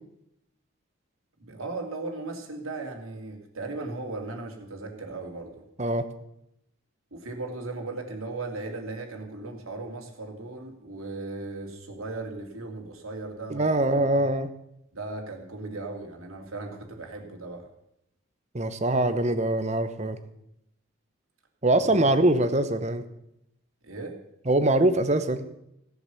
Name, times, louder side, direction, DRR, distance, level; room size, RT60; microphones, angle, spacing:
voice 1, 1.4-5.6 7.1-13.7 14.9-17.7 21.7-22.1 23.8-24.2, right 3 dB, 90° right, 2 dB, 2.8 m, -37 dB
voice 2, 13.5-14.5 18.5-20.2 21.6-23.0 24.5-25.4, right 1 dB, 35° right, 10 dB, 1.0 m, -23 dB
16.5 x 8.1 x 7.1 m, 0.81 s
head